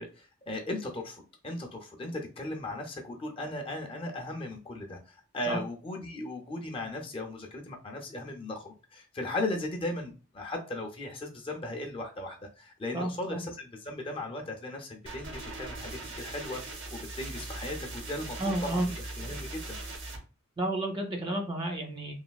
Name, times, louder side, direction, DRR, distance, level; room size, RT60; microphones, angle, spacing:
voice 1, 0.0-18.4 18.7-19.8, left 2 dB, 25° left, 2 dB, 0.4 m, -37 dB
voice 2, 12.9-13.4 18.4-18.9 20.6-22.1, right 1 dB, 25° right, 3 dB, 0.5 m, -31 dB
sound 1, 15.1-20.2, right 2 dB, 65° right, 0.7 m, -40 dB
3.2 x 2.3 x 2.3 m, 0.34 s
head